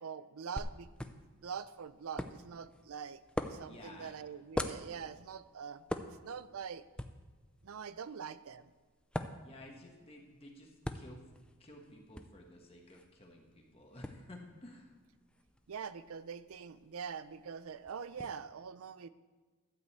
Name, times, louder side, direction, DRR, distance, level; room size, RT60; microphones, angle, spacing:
voice 1, 0.0-3.2 3.5-6.8 7.6-8.7 15.7-19.1, right 6 dB, 70° right, 15 dB, 0.5 m, -44 dB
sound 1, 0.6-18.3, left 1 dB, 5° left, 0.4 m, -45 dB
voice 2, 3.6-4.2 9.4-11.3 11.6-14.9, left 1 dB, 25° left, 1 dB, 1.3 m, -53 dB
12.5 x 5.3 x 7.9 m, 1.4 s
head